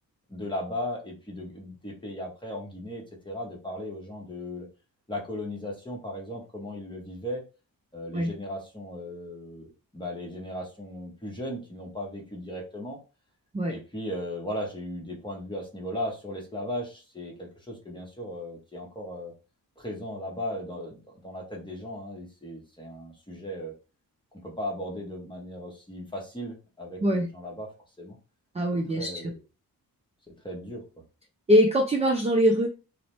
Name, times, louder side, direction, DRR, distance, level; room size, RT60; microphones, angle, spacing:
voice 1, 0.3-4.7 5.1-7.4 7.9-13.0 13.7-19.3 19.8-23.7 24.3-27.7 28.0-28.2 28.9-29.4 30.4-30.8, left 1 dB, 15° left, -1 dB, 0.9 m, -37 dB
voice 2, 28.5-29.2 31.5-32.7, equal, 20° right, 0 dB, 0.4 m, -22 dB
2.4 x 2.1 x 3.0 m, 0.32 s
wide cardioid pair, 100°, 37 cm